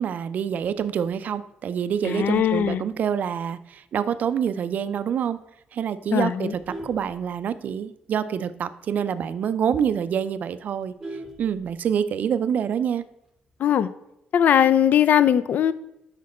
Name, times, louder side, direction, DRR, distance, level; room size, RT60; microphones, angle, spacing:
voice 1, 0.0-5.4 5.7-10.9 11.4-13.0, right 8 dB, 55° right, 14 dB, 0.4 m, -26 dB
Vehicle horn car horn honking, 1.8-3.3 3.7-4.0 4.3-4.4 4.8-4.9 5.2-5.6 6.1-7.9 8.3-8.4 8.7-8.8 9.2-9.3 9.7-9.8 10.0-12.1 13.2-13.7, right 1 dB, 5° right, 0.9 m, -40 dB
voice 2, 2.0-2.8 6.1-6.5 13.6-13.9 14.3-15.7, left 9 dB, 60° left, 15 dB, 0.3 m, -20 dB
6.4 x 5.1 x 4.2 m, 0.83 s
cardioid pair, 140°, 3 cm